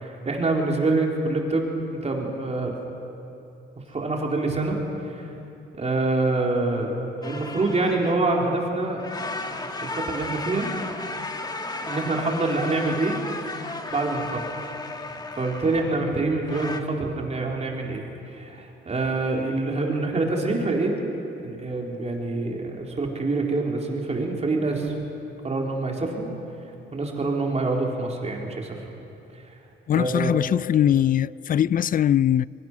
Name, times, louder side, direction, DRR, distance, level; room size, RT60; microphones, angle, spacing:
voice 1, 0.0-2.8 3.9-4.8 5.7-6.9 7.2-9.0 9.5-10.7 11.9-13.2 13.9-14.5 15.4-18.0 18.3-21.0 21.4-25.0 25.4-26.3 26.9-28.8 29.9-30.3, right 2 dB, 35° right, 3.8 m, -26 dB
sound 1, 7.2-8.6 8.9-16.8, left 2 dB, 20° left, 1.6 m, -34 dB
voice 2, 29.9-32.5, left 10 dB, 45° left, 0.4 m, -21 dB
23.5 x 22.5 x 6.2 m
cardioid pair, 90°, 20 cm